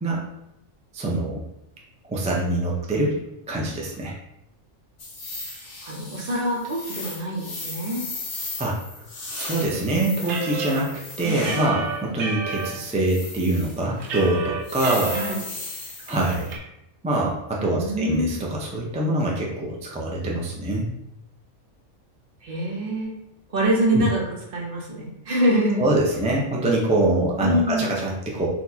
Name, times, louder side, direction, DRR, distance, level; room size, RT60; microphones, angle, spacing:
voice 1, 0.9-1.4 2.1-3.2 3.5-4.1 8.6-8.8 9.4-10.9 11.2-15.1 16.1-16.5 17.0-20.9 23.9-24.0 25.8-28.5, right 2 dB, 10° right, -3 dB, 0.3 m, -24 dB
sound 1, 5.0-11.7 12.5-13.8 14.1-14.2 14.6-16.5, left 2 dB, 60° left, 1.3 m, -36 dB
voice 2, 5.8-8.0 11.2-11.5 15.1-15.4 17.6-18.4 22.4-23.1 23.5-24.2 24.5-25.9 27.4-27.9, equal, 50° right, -1 dB, 0.9 m, -25 dB
sound 2, 10.3-12.7 13.2-13.3 13.6-15.3 15.7-15.8 16.1-16.6, right 4 dB, 80° right, 1.1 m, -31 dB
4.5 x 2.4 x 4.0 m, 0.86 s
omnidirectional pair, 1.4 m